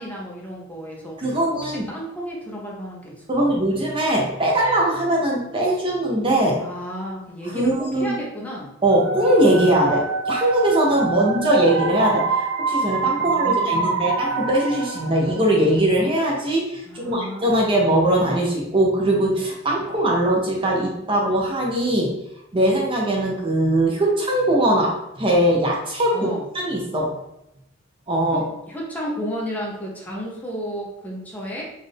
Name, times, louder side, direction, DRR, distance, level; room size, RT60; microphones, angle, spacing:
voice 1, 0.0-3.5 6.6-8.7 11.0-11.2 13.2-14.0 16.9-17.7 26.1-26.4 28.3-31.6, equal, 10° left, -3 dB, 0.7 m, -33 dB
voice 2, 1.2-1.9 3.3-6.6 7.5-8.2 8.8-22.1 22.5-26.3 26.5-27.2 28.1-28.4, right 1 dB, 25° right, -1 dB, 0.7 m, -21 dB
sound 1, 8.9-15.7, right 4 dB, 80° right, 0.4 m, -26 dB
4.0 x 2.6 x 3.3 m, 0.86 s
head